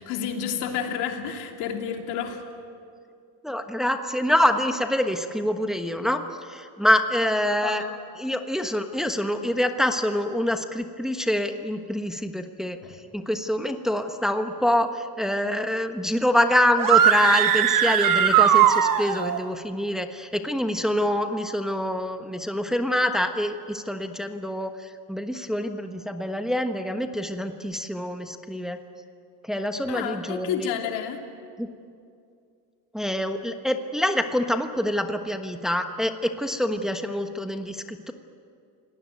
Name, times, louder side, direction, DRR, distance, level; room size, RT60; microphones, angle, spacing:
voice 1, 0.0-2.4 7.6-7.9 12.8-13.0 29.9-31.2, left 8 dB, 80° left, 3 dB, 3.1 m, -30 dB
voice 2, 3.4-7.8 8.2-12.8 13.1-24.7 25.1-28.8 29.4-30.7 31.6-31.7 32.9-38.1, left 1 dB, ahead, 6 dB, 1.2 m, -26 dB
sound 1, 16.8-19.4, right 9 dB, 55° right, 1.6 m, -19 dB
28.5 x 18.5 x 9.3 m, 2.4 s
cardioid pair, 115°, 40 cm